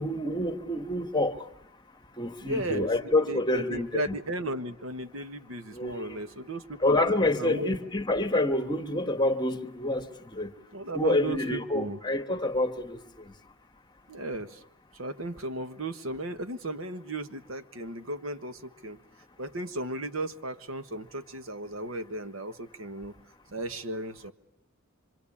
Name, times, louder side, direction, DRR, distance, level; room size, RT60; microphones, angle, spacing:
voice 1, 0.0-1.4 2.2-4.2 5.7-6.2 6.8-10.1 10.3-10.5 10.9-13.0, left 1 dB, 20° left, 1.4 m, -27 dB
voice 2, 2.4-2.9 3.3-7.0 7.4-7.7 10.7-12.0 14.1-14.6 14.9-19.0 19.4-23.1 23.5-24.3, right 1 dB, 75° right, 1.4 m, -35 dB
26.0 x 25.5 x 8.6 m
head